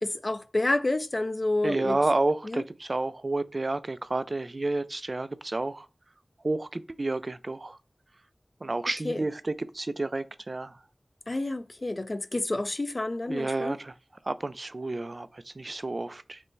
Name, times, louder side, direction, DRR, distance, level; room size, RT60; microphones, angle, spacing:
voice 1, 0.0-2.0 2.4-2.7 9.0-9.2 11.3-13.8, left 2 dB, 45° left, 0.5 m, -29 dB
voice 2, 1.6-5.9 6.4-7.8 8.6-10.8 13.3-13.9 14.3-16.4, right 2 dB, 55° right, 0.4 m, -30 dB
5.3 x 2.1 x 4.5 m
wide cardioid pair, 65°, 0 cm